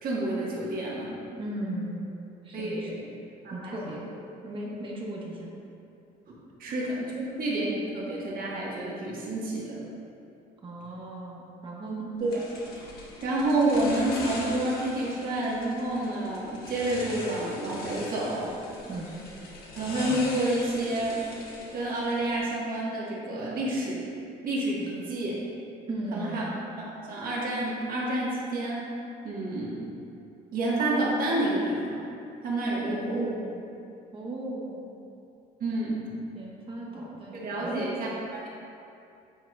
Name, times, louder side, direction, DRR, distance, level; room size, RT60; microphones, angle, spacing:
voice 1, 0.0-1.2 2.5-3.0 3.4-3.8 6.3-9.8 12.2-12.4 13.2-18.5 19.7-21.3 21.7-24.1 24.4-25.4 26.1-26.4 26.8-28.9 29.2-29.8 30.5-32.1 32.4-33.3 35.6-36.0 37.3-38.5, right 1 dB, 60° right, -5 dB, 1.5 m, -29 dB
voice 2, 1.3-2.1 2.4-3.0 3.5-4.0 4.4-5.5 10.6-12.1 18.8-19.1 25.9-26.4 32.9-33.6 34.1-34.8 36.3-37.8, right 2 dB, 30° right, -4 dB, 1.2 m, -36 dB
sound 1, 12.3-22.4, left 2 dB, 65° left, 1.2 m, -41 dB
8.7 x 4.5 x 2.4 m, 2.6 s
cardioid pair, 110°, 17 cm